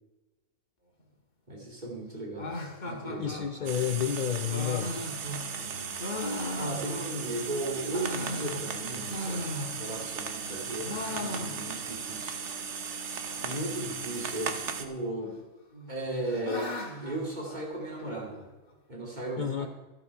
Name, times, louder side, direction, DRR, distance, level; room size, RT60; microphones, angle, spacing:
voice 1, 1.5-2.5 2.8-3.4 5.6-6.0 6.5-12.4 13.4-15.4 15.9-16.7 17.0-18.5 18.9-19.7, right 1 dB, 30° right, -1 dB, 2.7 m, -36 dB
sound 1, 2.4-7.4 7.8-10.1 10.4-12.0 12.2-12.3 12.5-12.6 13.3-13.7 14.8-15.4 15.7-18.1, left 2 dB, 30° left, 1.7 m, -38 dB
voice 2, 3.2-4.9 19.4-19.7, left 9 dB, 75° left, 8 dB, 0.4 m, -30 dB
sound 2, 3.7-14.9, right 6 dB, 55° right, 1.2 m, -37 dB
12.5 x 12.0 x 4.7 m, 1.2 s
omnidirectional pair, 1.6 m